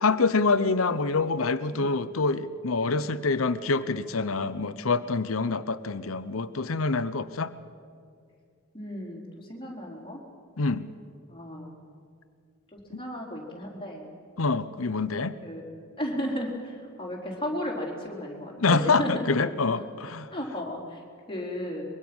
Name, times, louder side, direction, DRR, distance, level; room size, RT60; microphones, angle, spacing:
voice 1, 0.0-7.5 10.6-10.9 12.9-13.0 14.4-15.4 18.6-20.3, left 4 dB, 80° left, 14 dB, 0.8 m, -26 dB
voice 2, 8.7-10.2 11.3-11.7 12.7-14.1 15.4-15.6 16.0-19.2 20.3-21.0 21.3-21.8, left 1 dB, 25° left, -1 dB, 4.4 m, -34 dB
24.0 x 23.0 x 6.3 m, 2.3 s
head